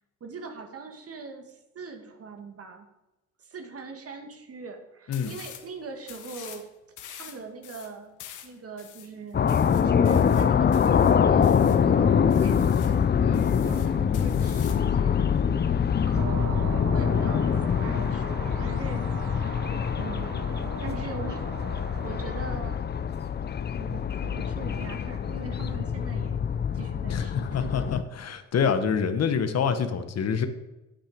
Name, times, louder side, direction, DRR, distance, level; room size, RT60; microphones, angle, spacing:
voice 1, 0.2-2.9 3.4-6.6 7.1-8.1 8.4-12.6 13.6-19.0 20.0-21.5 22.0-22.9 23.8-26.4 26.7-27.7, right 4 dB, 50° right, 5 dB, 2.0 m, -42 dB
sound 1, 5.1-5.7 6.0-6.7 7.0-11.8 12.3-13.0 13.3-14.9, left 10 dB, 80° left, 1.3 m, -46 dB
sound 2, 9.3-28.0, left 7 dB, 35° left, 0.6 m, -24 dB
sound 3, 16.2-22.6, right 10 dB, 75° right, 0.6 m, -39 dB
voice 2, 27.1-30.5, left 6 dB, 55° left, 9 dB, 1.2 m, -27 dB
9.0 x 8.9 x 5.1 m, 1.0 s
cardioid pair, 90°, 30 cm